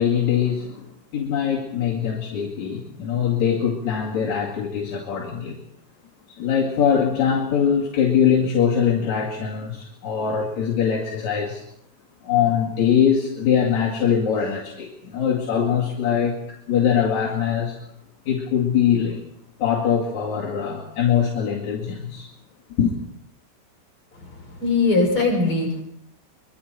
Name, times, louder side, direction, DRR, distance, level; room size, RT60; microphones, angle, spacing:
voice 1, 0.0-5.6 6.4-11.6 12.2-17.8 18.2-19.2 19.6-22.3 22.8-22.9, left 8 dB, 45° left, -3 dB, 2.9 m, -22 dB
voice 2, 24.6-25.8, left 3 dB, 25° left, 0 dB, 7.2 m, -20 dB
25.0 x 23.5 x 4.5 m, 0.72 s
omnidirectional pair, 5.9 m